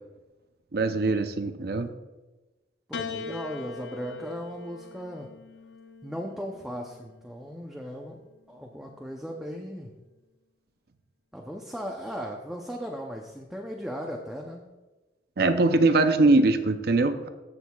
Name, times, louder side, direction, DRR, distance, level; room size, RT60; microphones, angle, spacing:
voice 1, 0.7-1.9 15.4-17.3, right 2 dB, 60° right, 9 dB, 0.6 m, -22 dB
Piano, 2.9-7.4 8.4-9.2, left 5 dB, 70° left, 0.6 m, -41 dB
voice 2, 2.9-5.3 6.0-9.9 11.3-14.6, equal, 5° right, 0 dB, 0.6 m, -37 dB
15.0 x 6.2 x 2.3 m, 1.1 s
head